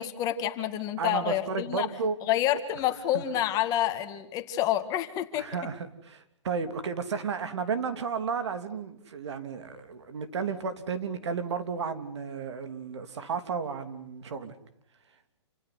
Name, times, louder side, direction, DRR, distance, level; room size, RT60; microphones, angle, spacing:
voice 1, 0.0-1.9 2.3-5.5, left 12 dB, 25° left, 8 dB, 2.2 m, -28 dB
voice 2, 1.0-2.2 3.1-3.2 5.3-14.5, right 5 dB, 70° right, 9 dB, 3.0 m, -33 dB
28.5 x 16.0 x 9.6 m, 0.75 s
hypercardioid pair, 150°, 15 cm